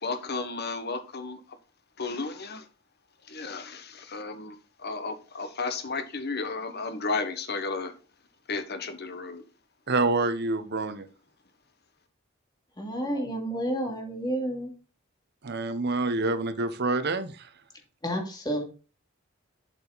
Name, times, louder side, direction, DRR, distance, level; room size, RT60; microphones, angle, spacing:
voice 1, 0.0-1.4 2.0-2.7 3.3-7.9 8.5-9.4, left 4 dB, 55° left, 1.4 m, -33 dB
voice 2, 9.9-11.1 15.4-17.5, right 3 dB, 55° right, 1.0 m, -27 dB
voice 3, 12.8-14.7 18.0-18.6, right 1 dB, 20° left, 2.5 m, -30 dB
7.7 x 7.0 x 4.1 m
head